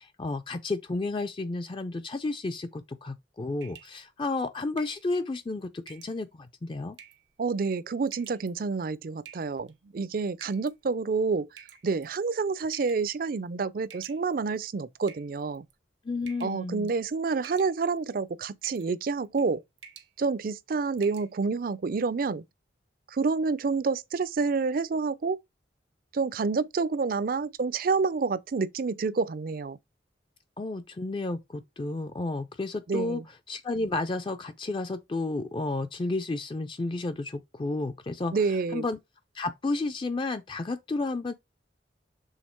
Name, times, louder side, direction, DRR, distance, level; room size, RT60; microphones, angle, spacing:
voice 1, 0.0-7.0 16.0-16.9 30.6-33.2 33.5-38.3 38.7-39.0 39.3-41.3, left 2 dB, 30° left, 0.4 m, -32 dB
sound 1, 3.6-4.0 4.8-5.1 5.9-6.2 6.9-7.3 8.1-8.5 9.3-9.7 10.4-10.7 11.6-12.1 12.7-13.1 13.9-14.6 15.0-15.7 16.3-16.6 16.9-17.1 17.4-18.0 18.6-18.9 19.2-19.5 19.8-20.1 20.5-20.6 21.0-21.3, right 7 dB, 80° right, 1.1 m, -49 dB
voice 2, 7.4-15.6 16.4-19.6 20.2-22.4 23.1-25.4 26.1-29.8 32.9-33.2 38.3-38.8, right 4 dB, 50° right, 0.4 m, -28 dB
6.4 x 3.6 x 4.4 m
head